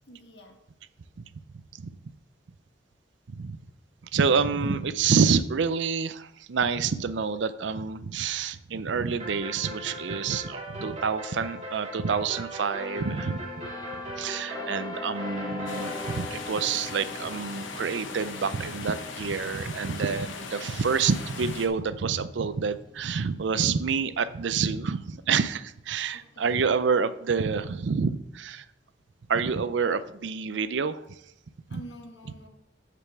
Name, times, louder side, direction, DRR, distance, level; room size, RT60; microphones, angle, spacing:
voice 1, 0.1-0.6 20.0-20.4 26.1-26.5 31.7-32.5, equal, 65° left, 3 dB, 1.6 m, -48 dB
voice 2, 1.5-1.9 3.3-3.6 4.1-13.4 14.2-28.7 29.3-31.2 31.7-31.8, right 5 dB, 75° right, 14 dB, 0.5 m, -28 dB
sound 1, 9.2-16.3, equal, 35° right, 1.8 m, -39 dB
sound 2, 12.8-24.3 24.7-25.0, left 3 dB, 20° left, 1.1 m, -42 dB
sound 3, 15.7-21.7, left 4 dB, 85° left, 1.0 m, -39 dB
6.7 x 5.1 x 6.9 m, 0.79 s
head